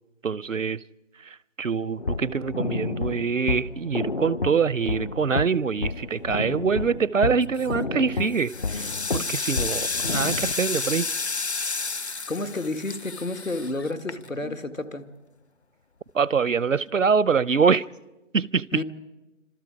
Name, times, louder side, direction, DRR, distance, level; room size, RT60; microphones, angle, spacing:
voice 1, 0.2-0.8 1.2-11.1 16.1-17.8 18.3-18.8, right 5 dB, 75° right, 0.7 m, -24 dB
sound 1, 2.0-10.5, left 3 dB, 40° left, 0.8 m, -30 dB
sound 2, 7.4-7.8 8.3-14.6, left 4 dB, 60° left, 1.3 m, -31 dB
voice 2, 12.3-15.1 18.7-18.8, left 2 dB, 90° left, 2.1 m, -30 dB
29.5 x 26.0 x 4.9 m
figure-of-eight pair, 155°, 39 cm